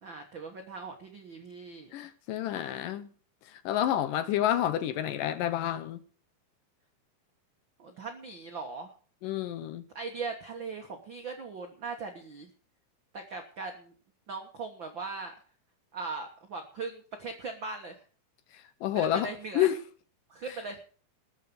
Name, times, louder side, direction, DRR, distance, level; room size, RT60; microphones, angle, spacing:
voice 1, 0.0-1.9 7.8-8.9 9.9-12.5 13.1-13.9 14.3-15.3 15.9-18.0 18.9-19.7 20.3-20.8, right 4 dB, 80° right, 1.0 m, -39 dB
voice 2, 1.9-3.1 3.5-6.0 9.2-9.8 18.5-19.3 19.6-19.7, left 11 dB, 75° left, 2.2 m, -29 dB
20.5 x 7.5 x 5.3 m
omnidirectional pair, 4.4 m